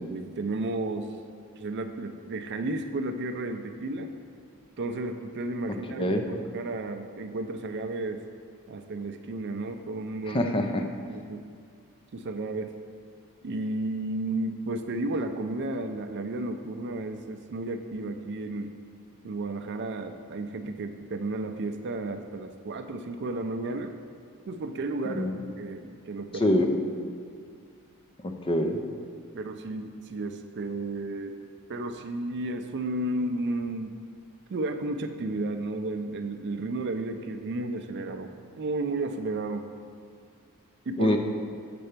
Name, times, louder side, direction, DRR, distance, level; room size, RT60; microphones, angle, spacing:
voice 1, 0.0-1.2 1.6-4.1 4.8-8.2 8.7-10.4 11.1-11.5 12.1-12.8 13.4-18.7 19.2-23.9 24.4-25.3 25.6-26.5 29.3-31.4 31.7-34.0 34.5-39.7 40.9-41.2, right 2 dB, 50° right, 7 dB, 0.4 m, -33 dB
voice 2, 5.9-6.2 10.3-10.9 25.1-25.3 26.4-26.7 28.2-28.8 41.0-41.2, left 1 dB, 25° left, 4 dB, 0.5 m, -25 dB
6.8 x 4.4 x 6.6 m, 2.2 s
head